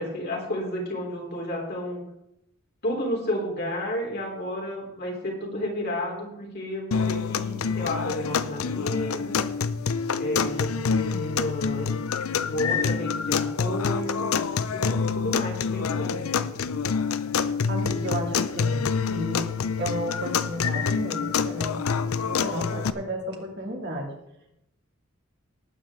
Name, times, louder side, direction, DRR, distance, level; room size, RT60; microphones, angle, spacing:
voice 1, 0.0-2.0 2.8-9.4 10.1-11.9 12.4-16.2, left 1 dB, 50° left, -1 dB, 3.7 m, -31 dB
sound 1, 6.9-22.9, left 6 dB, 90° left, 0.6 m, -27 dB
voice 2, 17.7-19.5 19.8-24.1, equal, 55° right, 0 dB, 2.6 m, -33 dB
19.0 x 9.0 x 3.7 m, 0.82 s
head